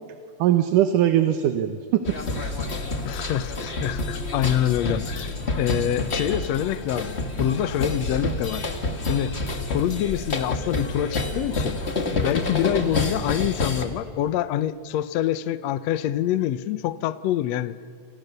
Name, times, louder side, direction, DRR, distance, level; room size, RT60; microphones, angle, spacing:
voice 1, 0.4-2.7, right 11 dB, 70° right, 8 dB, 2.4 m, -22 dB
sound 1, 2.0-13.8, left 2 dB, 30° left, 1.3 m, -28 dB
voice 2, 3.0-8.6 9.1-9.3 9.7-11.8 12.2-17.8, left 11 dB, 80° left, 14 dB, 1.5 m, -26 dB
29.0 x 28.0 x 6.7 m, 2.2 s
omnidirectional pair, 4.0 m